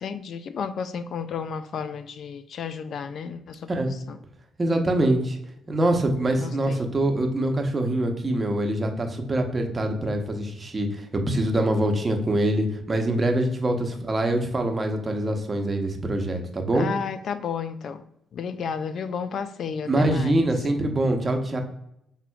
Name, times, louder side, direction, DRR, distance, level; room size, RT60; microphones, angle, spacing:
voice 1, 0.0-4.2 6.4-6.9 16.7-18.0 18.3-20.4, left 6 dB, 60° left, 11 dB, 0.3 m, -32 dB
voice 2, 4.6-5.4 5.7-10.9 11.1-16.9 19.9-21.6, right 1 dB, 30° right, 3 dB, 0.9 m, -24 dB
6.1 x 3.6 x 2.3 m, 0.79 s
cardioid pair, 90°, 0 cm